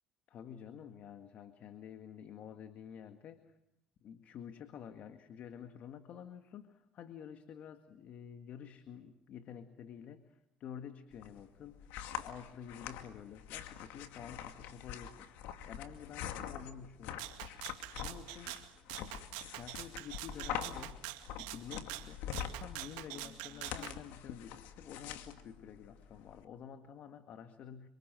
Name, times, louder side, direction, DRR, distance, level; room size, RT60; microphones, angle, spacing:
voice 1, 0.3-3.6 4.0-17.6 17.9-18.6 19.6-21.1 21.4-22.2 22.6-27.9, left 8 dB, 55° left, 8 dB, 1.9 m, -50 dB
sound 1, 11.1-26.4, left 9 dB, 80° left, 2.4 m, -45 dB
Rattle (instrument), 17.2-23.9, right 18 dB, 90° right, 2.1 m, -45 dB
28.0 x 25.5 x 7.8 m, 0.81 s
supercardioid pair, 100°, 3 cm